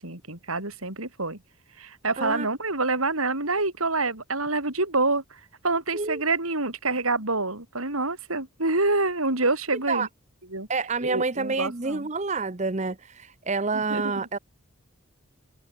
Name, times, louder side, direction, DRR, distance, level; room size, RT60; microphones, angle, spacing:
voice 1, 0.0-1.4 1.8-5.2 5.6-10.1 10.5-10.7 11.0-12.1 13.7-14.2, right 3 dB, 85° right, 7.3 m, -27 dB
voice 2, 10.7-14.4, right 4 dB, 35° right, 0.9 m, -28 dB
head